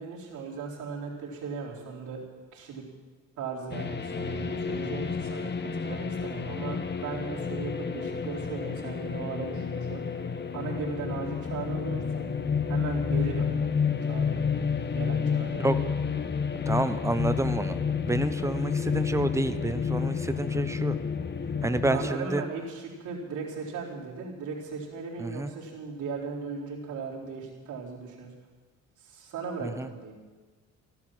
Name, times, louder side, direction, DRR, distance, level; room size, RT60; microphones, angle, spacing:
voice 1, 0.0-2.2 2.5-2.8 3.4-10.0 10.5-12.3 12.7-13.5 13.8-14.4 14.9-15.6 21.6-28.3 29.0-30.1, right 5 dB, 80° right, -4 dB, 3.9 m, -37 dB
sound 1, 3.7-22.1, left 6 dB, 35° left, 1.1 m, -30 dB
voice 2, 16.7-21.0 21.6-22.4 25.2-25.5 29.6-29.9, right 2 dB, 10° right, 11 dB, 0.9 m, -29 dB
15.0 x 12.0 x 6.2 m, 1.4 s
cardioid pair, 90°, 30 cm